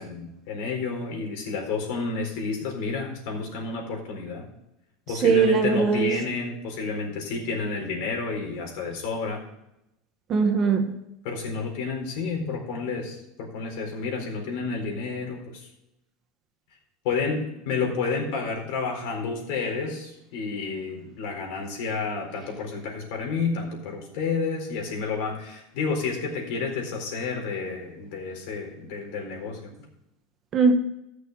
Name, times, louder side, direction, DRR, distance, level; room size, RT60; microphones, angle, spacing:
voice 1, 0.0-4.4 5.1-9.4 11.2-15.7 17.0-29.7, left 4 dB, 60° left, 1 dB, 4.1 m, -30 dB
voice 2, 5.2-6.1 10.3-10.9 30.5-30.7, right 5 dB, 25° right, 5 dB, 1.2 m, -20 dB
14.5 x 6.7 x 4.7 m, 0.84 s
supercardioid pair, 165°, 0 cm